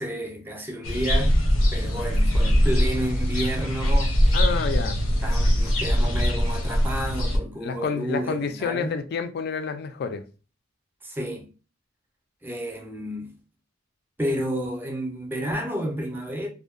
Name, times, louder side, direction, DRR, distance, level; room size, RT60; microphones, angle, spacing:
voice 1, 0.0-1.4 1.7-4.4 5.2-9.0 11.0-11.5 12.4-13.3 14.2-16.5, right 1 dB, 10° right, 0.4 m, -31 dB
sound 1, 0.8-7.4, equal, 85° left, 0.7 m, -22 dB
voice 2, 4.3-5.0 7.6-10.2, left 5 dB, 50° left, 0.3 m, -29 dB
2.6 x 2.1 x 2.4 m
head